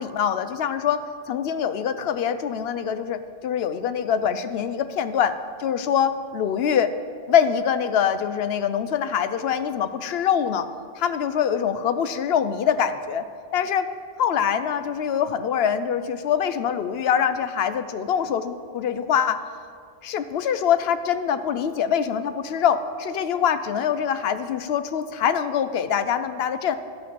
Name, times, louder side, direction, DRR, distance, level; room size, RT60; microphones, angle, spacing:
voice 1, 0.0-6.9 7.3-10.7 11.0-13.2 13.5-13.9 14.2-19.4 20.0-26.8, left 8 dB, 75° left, 11 dB, 0.8 m, -24 dB
12.0 x 5.8 x 6.1 m, 2.1 s
omnidirectional pair, 1.1 m